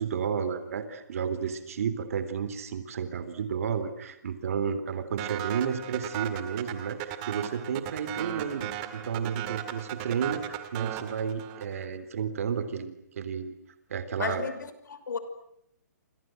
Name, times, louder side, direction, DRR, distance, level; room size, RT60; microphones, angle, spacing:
voice 1, 0.0-13.5 13.9-14.4, right 7 dB, 50° right, 12 dB, 3.7 m, -32 dB
sound 1, 5.2-11.8, right 12 dB, 20° right, 2.1 m, -37 dB
voice 2, 14.2-15.2, left 5 dB, 85° left, 11 dB, 5.7 m, -33 dB
29.5 x 25.5 x 7.9 m, 0.76 s
hypercardioid pair, 170°, 10 cm